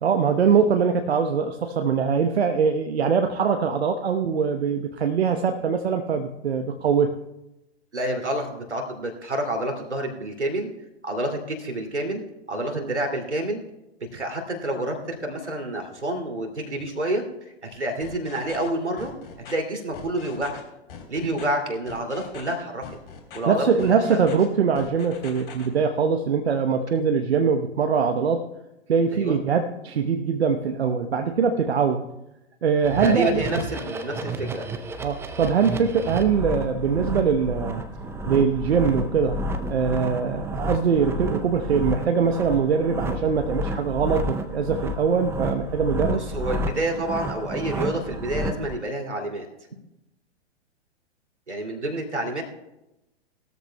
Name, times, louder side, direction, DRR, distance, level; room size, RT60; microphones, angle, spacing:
voice 1, 0.0-7.1 12.8-12.9 23.5-28.4 28.9-32.1 32.6-33.6 35.0-37.8 38.3-46.2, right 6 dB, 65° right, 5 dB, 1.0 m, -22 dB
voice 2, 7.9-10.7 11.0-12.2 12.5-13.6 14.1-17.2 17.6-19.1 19.5-20.6 21.1-22.8 23.3-24.3 29.1-29.4 33.0-34.7 46.1-49.5 51.5-52.4, right 1 dB, 85° right, 3 dB, 2.7 m, -28 dB
sound 1, 18.0-18.7 19.0-19.5 19.9-20.6 20.9-21.5 21.9-22.5 22.8-23.4 23.8-24.5 24.8-25.7, left 6 dB, 55° left, 3.6 m, -42 dB
sound 2, 32.8-48.7, right 1 dB, 5° right, 0.7 m, -31 dB
19.5 x 13.5 x 2.2 m, 0.93 s
figure-of-eight pair, 110°, 33 cm